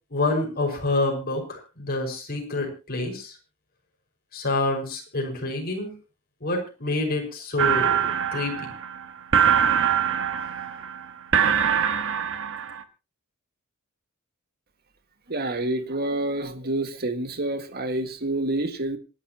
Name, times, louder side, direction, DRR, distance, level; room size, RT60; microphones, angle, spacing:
voice 1, 0.1-3.3 4.3-5.9 6.4-8.0 8.3-8.7, left 2 dB, 45° left, 5.6 m, -27 dB
sound 1, 7.6-12.8, right 8 dB, 60° right, 1.4 m, -23 dB
voice 2, 15.3-19.0, right 1 dB, 45° right, 1.9 m, -28 dB
26.5 x 11.5 x 3.0 m
head